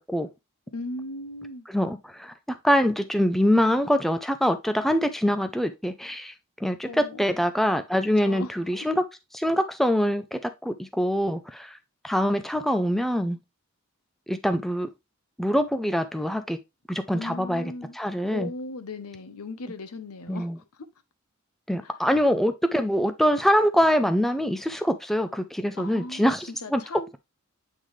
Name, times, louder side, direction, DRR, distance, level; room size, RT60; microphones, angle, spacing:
voice 1, 0.7-1.6 6.8-7.4 8.2-8.9 17.1-17.9 18.3-20.5 21.8-21.9 25.8-26.3 26.6-27.1, left 2 dB, 90° left, 0.8 m, -37 dB
voice 2, 1.7-6.3 6.6-9.0 9.3-11.8 12.0-13.4 14.3-14.9 15.4-16.6 16.9-18.5 20.3-20.6 21.7-26.8, equal, ahead, 0.4 m, -24 dB
8.1 x 3.7 x 3.1 m
head